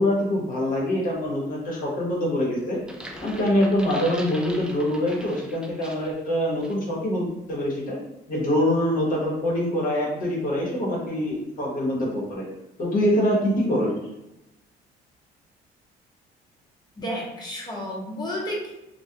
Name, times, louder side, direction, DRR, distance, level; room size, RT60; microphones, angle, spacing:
voice 1, 0.0-2.8 3.2-8.0 8.3-12.4 12.8-13.9, left 1 dB, 55° left, -3 dB, 0.9 m, -24 dB
sound 1, 2.7-6.2 6.6-6.8, equal, 5° right, 0.3 m, -41 dB
voice 2, 17.0-18.7, equal, 25° left, -3 dB, 0.8 m, -31 dB
2.3 x 2.1 x 2.7 m, 0.90 s
cardioid pair, 110°, 17 cm